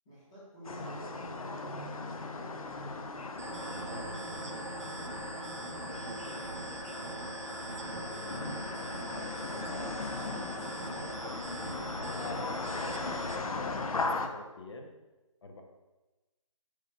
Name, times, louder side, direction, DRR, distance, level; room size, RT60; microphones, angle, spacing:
voice 1, 0.1-2.8 3.5-4.7 6.8-7.2 10.3-11.1, right 1 dB, 5° left, -10 dB, 0.4 m, -50 dB
sound 1, 0.6-14.3, left 3 dB, 85° left, 0.5 m, -38 dB
sound 2, 3.4-13.4, right 3 dB, 55° right, 0.5 m, -42 dB
voice 2, 3.9-4.4 5.8-6.4 7.8-9.9 12.0-14.9 15.4-15.6, left 2 dB, 55° left, 2 dB, 0.7 m, -48 dB
4.4 x 4.0 x 2.8 m, 1.1 s
figure-of-eight pair, 160°, 18 cm